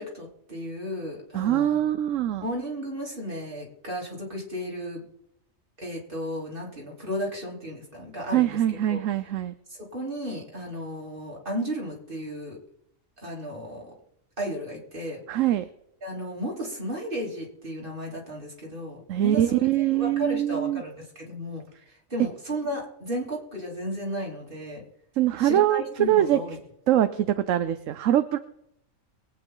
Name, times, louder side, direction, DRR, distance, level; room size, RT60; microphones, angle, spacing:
voice 1, 0.0-1.8 2.4-5.0 5.8-9.0 9.7-12.6 13.2-13.9 14.4-15.2 16.0-24.8 25.4-26.6, equal, 40° right, -3 dB, 3.6 m, -34 dB
voice 2, 1.3-2.5 8.3-9.5 15.3-15.6 19.1-20.8 25.2-26.4 26.9-28.4, right 12 dB, 75° right, 11 dB, 1.0 m, -23 dB
22.5 x 9.0 x 3.9 m, 0.76 s
omnidirectional pair, 1.4 m